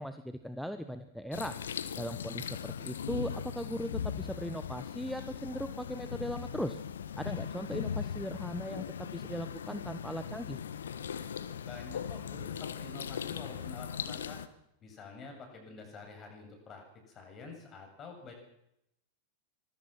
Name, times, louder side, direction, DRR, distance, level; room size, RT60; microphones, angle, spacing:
voice 1, 0.0-1.6 2.0-6.8 7.2-10.6, equal, ahead, 10 dB, 1.4 m, -38 dB
sound 1, 1.3-14.5, left 8 dB, 65° left, 1.4 m, -39 dB
voice 2, 11.6-14.4 14.8-18.3, left 4 dB, 30° left, 4 dB, 7.8 m, -48 dB
25.0 x 22.0 x 6.1 m, 0.80 s
figure-of-eight pair, 90°, 0 cm